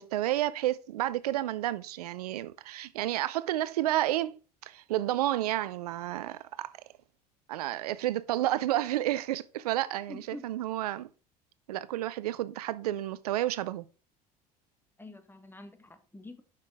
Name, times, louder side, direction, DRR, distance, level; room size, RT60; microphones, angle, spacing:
voice 1, 0.0-6.7 7.5-11.1 11.7-13.9, right 14 dB, 85° right, 0.5 m, -31 dB
voice 2, 10.1-10.5 15.0-16.4, left 2 dB, 10° left, 1.1 m, -46 dB
6.5 x 5.6 x 3.4 m
hypercardioid pair, 70°, 19 cm